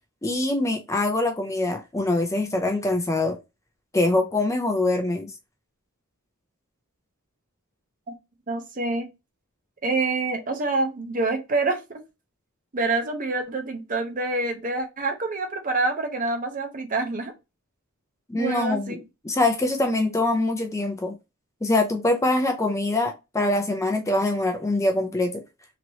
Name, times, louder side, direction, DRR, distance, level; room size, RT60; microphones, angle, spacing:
voice 1, 0.2-3.4 3.9-5.3 18.3-19.0 19.2-21.1 21.6-25.4, left 2 dB, 15° left, 0.4 m, -24 dB
voice 2, 8.5-9.1 9.8-12.0 12.7-17.3 18.3-19.0, right 3 dB, 40° right, 0.6 m, -26 dB
3.0 x 2.8 x 2.7 m
head